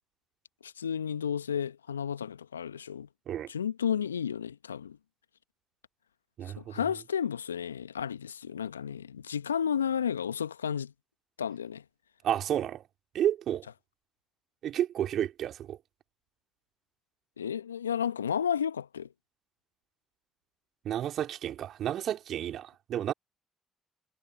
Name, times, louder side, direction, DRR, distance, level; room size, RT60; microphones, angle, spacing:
voice 1, 0.6-3.1 3.5-5.0 6.6-10.9 11.4-11.8 17.4-19.1, left 8 dB, 85° left, 1.2 m, -32 dB
voice 2, 6.4-6.9 12.2-12.8 13.1-13.7 14.6-15.8 20.8-23.1, right 11 dB, 60° right, 3.3 m, -31 dB
figure-of-eight pair, 45°, 0 cm